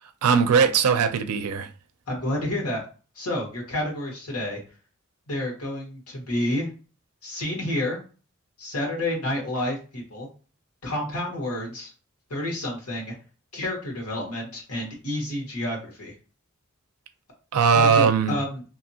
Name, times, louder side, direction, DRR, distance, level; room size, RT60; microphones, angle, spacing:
voice 1, 0.2-1.7 17.5-18.4, right 6 dB, 85° right, 0.4 m, -19 dB
voice 2, 2.1-2.8 3.1-4.6 5.3-6.7 7.2-8.0 8.6-10.3 10.8-11.9 12.3-13.1 13.5-16.1 17.7-18.6, left 1 dB, 85° left, 1.3 m, -29 dB
2.7 x 2.7 x 2.7 m
head